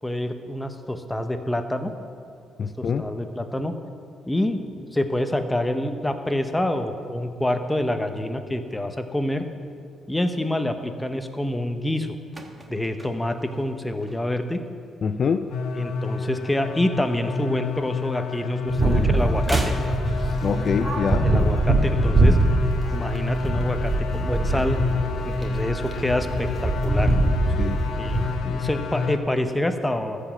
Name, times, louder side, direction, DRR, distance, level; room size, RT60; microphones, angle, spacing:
voice 1, 0.0-1.9 2.8-3.7 4.3-9.4 10.1-12.2 12.7-14.6 15.7-19.8 21.2-22.4 22.9-24.8 25.2-27.1 28.0-30.2, left 1 dB, 10° left, 7 dB, 0.8 m, -27 dB
voice 2, 2.6-3.1 15.0-15.5 20.4-21.3 27.6-27.8, left 6 dB, 50° left, 9 dB, 0.4 m, -25 dB
sound 1, 12.3-14.6 14.9-15.2 15.5-16.9 17.2-18.6 18.8-20.9 21.2-21.3, right 2 dB, 15° right, 1.1 m, -34 dB
sound 2, 15.5-29.2, left 4 dB, 80° left, 0.8 m, -29 dB
sound 3, 18.7-28.3, right 2 dB, 35° right, 1.9 m, -23 dB
13.0 x 5.0 x 7.4 m, 2.3 s
cardioid pair, 90°, 0 cm